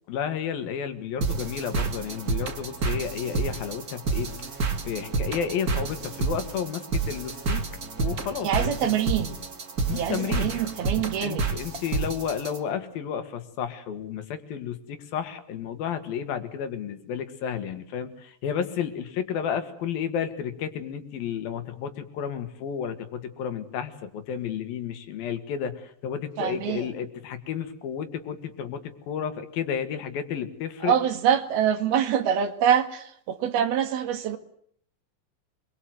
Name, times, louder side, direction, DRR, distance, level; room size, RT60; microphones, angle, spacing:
voice 1, 0.1-4.3 4.9-7.6 8.0-8.9 9.9-10.5 11.2-30.9, left 8 dB, 75° left, 9 dB, 3.7 m, -32 dB
sound 1, 1.2-12.6, right 4 dB, 30° right, 2.1 m, -29 dB
voice 2, 8.4-9.4 9.9-11.4 26.4-26.9 30.8-34.4, right 9 dB, 90° right, 8 dB, 3.8 m, -25 dB
26.5 x 22.5 x 7.8 m, 0.65 s
omnidirectional pair, 4.2 m